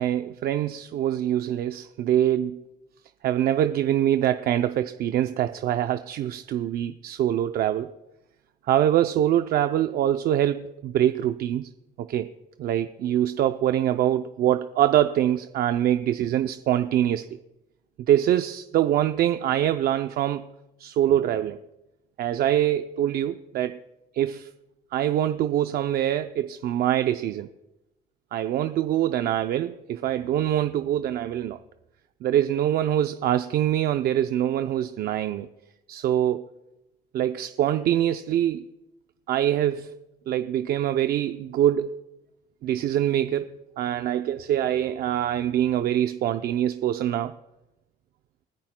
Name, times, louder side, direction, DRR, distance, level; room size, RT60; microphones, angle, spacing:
voice 1, 0.0-2.6 3.2-7.9 8.7-11.7 12.0-12.3 12.6-17.3 18.1-20.5 20.8-21.6 22.2-23.8 24.1-24.5 24.9-27.5 28.3-31.6 32.2-35.5 35.9-36.4 37.1-38.6 39.3-39.9 40.3-42.0 42.6-43.5 43.8-47.3, right 11 dB, 65° right, 9 dB, 0.5 m, -24 dB
28.5 x 10.0 x 2.2 m, 0.95 s
cardioid pair, 110°, 17 cm